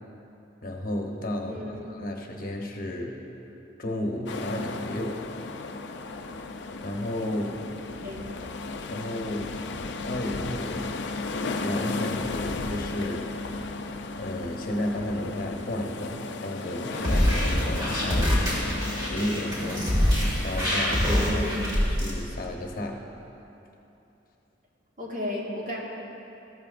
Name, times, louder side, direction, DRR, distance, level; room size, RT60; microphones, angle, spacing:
voice 1, 0.6-3.2 3.8-5.2 6.8-7.6 8.9-9.6 10.0-11.1 11.4-13.3 14.2-18.7 19.1-19.9 20.4-23.1, left 1 dB, 50° left, 1 dB, 1.0 m, -33 dB
voice 2, 1.5-1.8 8.0-8.2 21.1-21.6 25.0-25.8, left 1 dB, 45° right, -4 dB, 1.8 m, -33 dB
sound 1, 4.3-21.6, left 3 dB, 70° left, 0.5 m, -35 dB
sound 2, 16.9-22.1, equal, 25° right, 2.1 m, -25 dB
14.0 x 12.5 x 2.5 m, 2.9 s
head